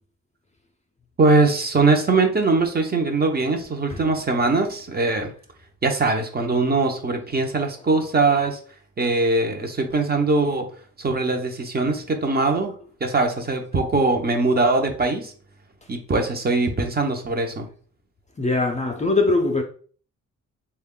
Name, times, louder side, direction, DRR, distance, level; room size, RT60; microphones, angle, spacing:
voice 1, 1.2-5.3 5.8-8.6 9.0-10.7 11.0-12.7 13.0-15.3 15.9-17.7, right 3 dB, 30° right, 0.7 m, -21 dB
voice 2, 18.4-19.6, left 3 dB, 25° left, 0.5 m, -21 dB
3.5 x 2.3 x 3.7 m
wide cardioid pair, 120°, 30 cm